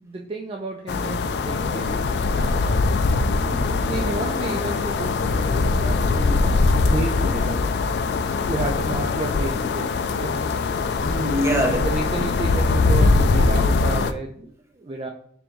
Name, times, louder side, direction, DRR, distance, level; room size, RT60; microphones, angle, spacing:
voice 1, 0.0-2.8 3.8-7.6 8.5-10.4 11.5-14.5 14.8-15.1, right 2 dB, 30° right, 1 dB, 0.4 m, -32 dB
sound 1, 0.9-14.1, left 3 dB, 65° left, 0.3 m, -22 dB
voice 2, 3.0-4.3 11.0-11.8, equal, 15° right, 1 dB, 0.7 m, -26 dB
3.5 x 2.6 x 4.5 m, 0.64 s
head